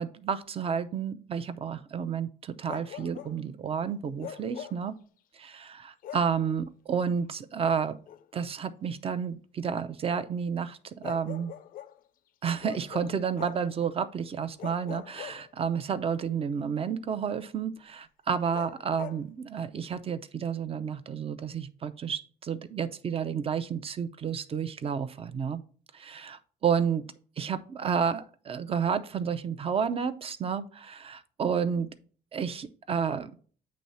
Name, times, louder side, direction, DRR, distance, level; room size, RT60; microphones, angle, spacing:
voice 1, 0.0-5.0 5.3-8.0 8.3-11.5 12.4-25.6 25.9-27.0 27.4-31.9 32.3-33.3, right 7 dB, 35° right, 12 dB, 0.6 m, -31 dB
Bark, 2.7-3.4 4.2-4.9 6.0-6.4 8.1-8.2 11.0-12.0 12.6-13.7 14.6-15.9 18.5-19.3, left 10 dB, 55° left, 0.5 m, -42 dB
8.8 x 3.1 x 5.6 m, 0.44 s
cardioid pair, 110°, 17 cm